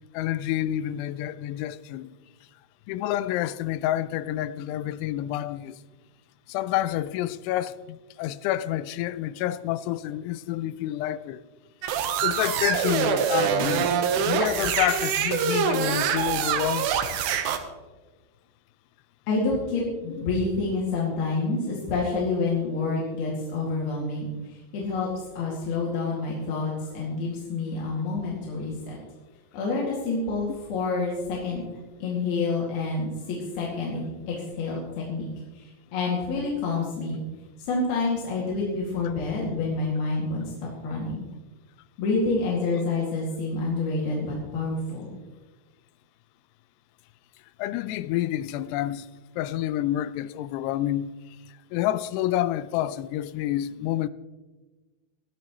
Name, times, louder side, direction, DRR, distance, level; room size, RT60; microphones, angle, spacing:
voice 1, 0.1-2.1 2.9-5.8 6.5-11.4 12.2-14.0 14.3-16.9 30.5-30.6 47.6-49.1 49.4-51.1 51.7-54.1, left 13 dB, 85° left, 2.7 m, -28 dB
sound 1, 11.8-17.6, right 7 dB, 85° right, 3.2 m, -25 dB
voice 2, 19.3-25.1 25.4-29.0 29.5-31.6 32.0-35.3 35.5-37.2 37.6-41.2 42.0-45.2, left 3 dB, 65° left, 4.1 m, -28 dB
21.0 x 13.0 x 3.1 m
omnidirectional pair, 4.8 m